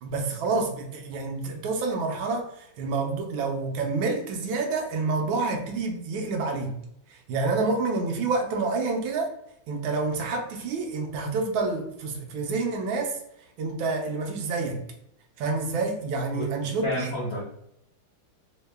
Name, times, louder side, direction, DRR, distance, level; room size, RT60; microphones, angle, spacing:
voice 1, 0.0-6.7 7.1-9.3 9.7-13.2 13.6-14.8 15.4-17.1, right 3 dB, 80° right, 3 dB, 1.4 m, -28 dB
voice 2, 16.4-17.4, left 1 dB, 70° left, -3 dB, 0.8 m, -31 dB
3.6 x 2.1 x 3.3 m, 0.76 s
omnidirectional pair, 2.2 m